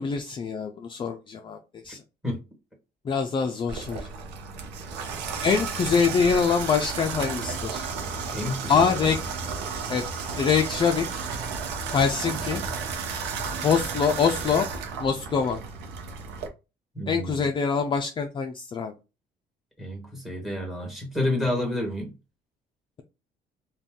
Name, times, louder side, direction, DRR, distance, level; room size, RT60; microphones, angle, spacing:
voice 1, 0.0-1.6 1.8-2.0 3.0-4.1 5.4-7.9 8.7-9.2 9.9-10.0 10.4-11.2 11.9-12.6 13.6-14.7 15.0-15.6 17.1-18.9, left 6 dB, 30° left, 0.4 m, -24 dB
Water tap faucet / Bathtub (filling or washing), 3.7-16.5, right 5 dB, 90° right, 0.7 m, -33 dB
voice 2, 8.3-9.1 16.9-17.5 19.8-22.1, left 1 dB, ahead, 1.4 m, -30 dB
2.6 x 2.3 x 3.6 m
cardioid pair, 110°, 17 cm